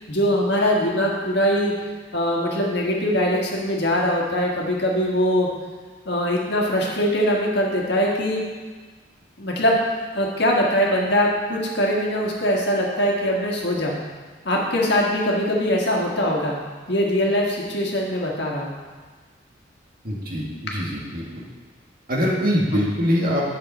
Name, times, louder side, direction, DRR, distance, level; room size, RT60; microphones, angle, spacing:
voice 1, 0.1-1.7 2.1-5.5 6.0-8.4 9.4-13.9 14.4-16.6 16.9-18.7, equal, 65° left, -2 dB, 1.7 m, -22 dB
voice 2, 20.0-21.4 22.1-23.5, equal, 50° right, -4 dB, 1.9 m, -23 dB
9.7 x 6.8 x 4.3 m, 1.4 s
head